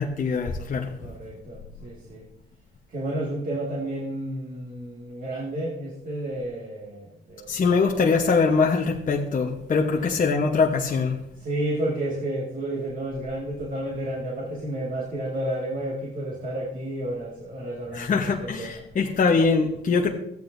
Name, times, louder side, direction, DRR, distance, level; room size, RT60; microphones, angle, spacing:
voice 1, 0.0-0.9 7.5-11.2 17.9-20.1, left 4 dB, 40° left, 1 dB, 1.0 m, -23 dB
voice 2, 1.0-2.2 2.9-7.6 10.0-10.1 11.4-18.8, right 1 dB, 45° right, -3 dB, 2.0 m, -31 dB
14.0 x 8.9 x 2.6 m, 0.81 s
cardioid pair, 90°, 20 cm